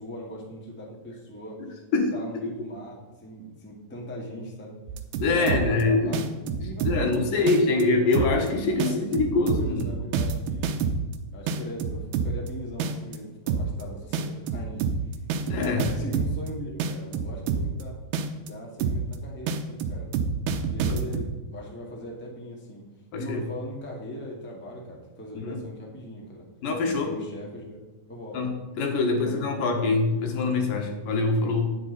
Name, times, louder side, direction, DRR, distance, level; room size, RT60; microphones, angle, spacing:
voice 1, 0.0-1.6 2.1-4.8 5.3-8.1 8.8-9.0 9.5-10.8 11.3-14.9 15.5-18.0 18.4-20.1 20.7-22.8 23.2-26.4 26.8-28.4 29.0-29.8, equal, 5° left, -2 dB, 1.2 m, -40 dB
sound 1, 4.9-5.8 6.1-7.1 7.5-7.8 8.1-8.5 8.8-11.1 11.5-12.5 12.8-13.2 13.5-13.8 14.1-16.5 16.8-17.8 18.1-18.5 18.8-19.1 19.5-21.3, right 5 dB, 75° right, 2.3 m, -27 dB
voice 2, 5.1-6.2 6.6-10.0 15.5-15.9 20.9-21.2 23.1-23.4 25.3-25.6 26.6-27.1 28.3-31.7, left 3 dB, 80° left, 3 dB, 3.0 m, -24 dB
9.4 x 9.0 x 4.1 m, 1.1 s
omnidirectional pair, 3.8 m